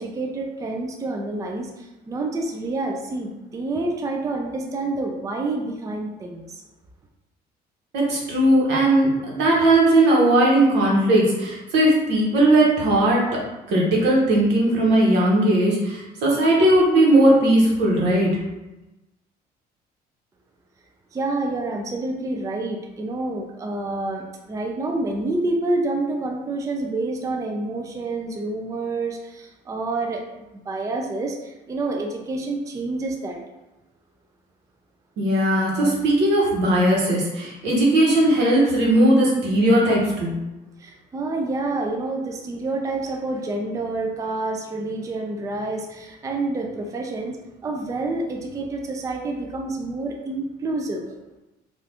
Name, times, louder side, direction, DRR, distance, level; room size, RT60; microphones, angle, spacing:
voice 1, 0.0-6.6 21.1-30.2 30.7-33.4 40.8-51.2, right 2 dB, 20° right, 1 dB, 0.4 m, -28 dB
voice 2, 7.9-13.2 13.7-18.3 35.2-40.3, right 1 dB, 85° right, -4 dB, 1.1 m, -18 dB
2.6 x 2.4 x 3.3 m, 1.0 s
cardioid pair, 110°, 17 cm